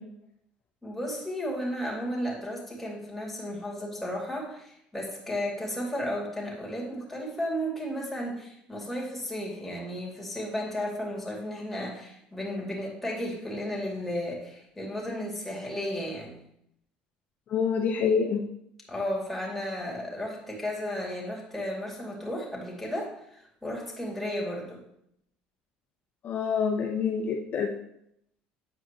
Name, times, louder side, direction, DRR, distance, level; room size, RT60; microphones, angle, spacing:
voice 1, 0.8-16.4 18.9-24.8, equal, 5° left, -3 dB, 2.7 m, -34 dB
voice 2, 17.5-18.4 26.2-27.7, left 6 dB, 50° left, 1 dB, 0.8 m, -26 dB
8.7 x 4.7 x 3.0 m, 0.75 s
supercardioid pair, 85°, 4 cm